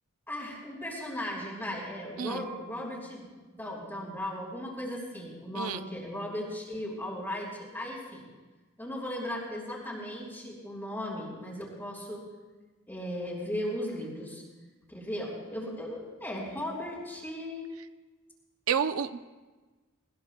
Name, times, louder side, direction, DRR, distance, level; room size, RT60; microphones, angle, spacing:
voice 1, 0.3-8.3 8.8-12.2 12.9-14.4 14.9-17.7, left 1 dB, 10° left, -3 dB, 4.6 m, -37 dB
voice 2, 5.6-5.9 18.7-19.2, right 7 dB, 75° right, 11 dB, 0.5 m, -30 dB
21.0 x 21.0 x 2.2 m, 1.3 s
head